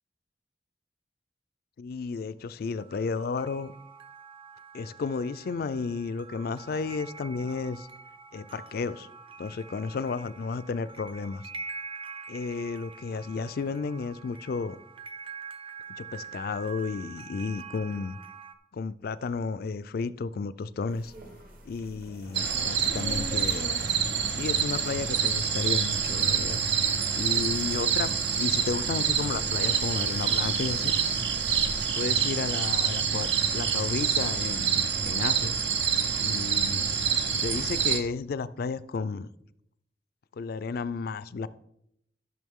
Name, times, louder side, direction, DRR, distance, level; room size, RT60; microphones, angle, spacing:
voice 1, 1.8-3.7 4.7-7.9 8.3-9.1 9.4-11.4 12.3-14.8 16.0-18.2 18.7-21.1 21.7-23.7 24.3-26.6 27.1-28.1 28.4-30.9 32.0-33.3 33.5-35.6 36.2-36.8 37.3-39.3 40.3-41.5, left 4 dB, 55° left, 0.4 m, -33 dB
sound 1, 2.8-18.5, right 5 dB, 30° right, 0.6 m, -45 dB
sound 2, 20.9-31.8, right 1 dB, 55° right, 1.4 m, -46 dB
sound 3, 22.3-38.0, right 7 dB, 80° right, 0.8 m, -27 dB
12.5 x 6.1 x 3.6 m
head